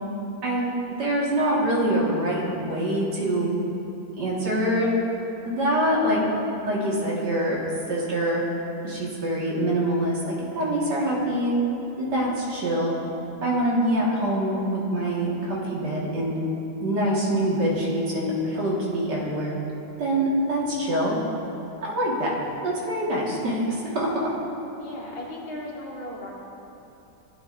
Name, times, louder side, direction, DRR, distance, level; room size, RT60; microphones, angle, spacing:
voice 1, 0.4-3.5 4.2-4.9 5.4-6.2 6.7-7.6 7.9-8.4 8.8-11.5 12.0-12.9 13.4-16.4 16.8-19.5 20.0-21.1 21.8-22.3 22.6-24.3, right 1 dB, 60° right, -5 dB, 2.3 m, -25 dB
voice 2, 24.8-26.3, left 1 dB, 55° left, -4 dB, 1.9 m, -36 dB
16.0 x 8.7 x 2.5 m, 3.0 s
omnidirectional pair, 2.0 m